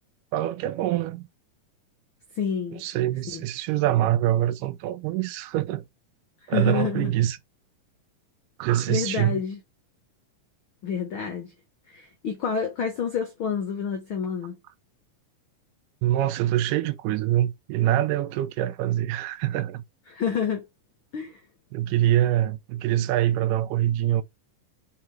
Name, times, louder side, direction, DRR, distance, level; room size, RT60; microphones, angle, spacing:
voice 1, 0.3-1.2 2.7-5.8 6.5-7.4 8.6-9.4 16.0-19.8 21.7-24.2, right 13 dB, 80° right, 2.2 m, -24 dB
voice 2, 2.3-2.8 3.3-3.4 6.5-7.1 8.9-9.6 10.8-11.5 11.9-14.6 20.1-20.6 21.1-21.4, left 7 dB, 75° left, 1.2 m, -28 dB
5.8 x 3.7 x 4.5 m
omnidirectional pair, 3.8 m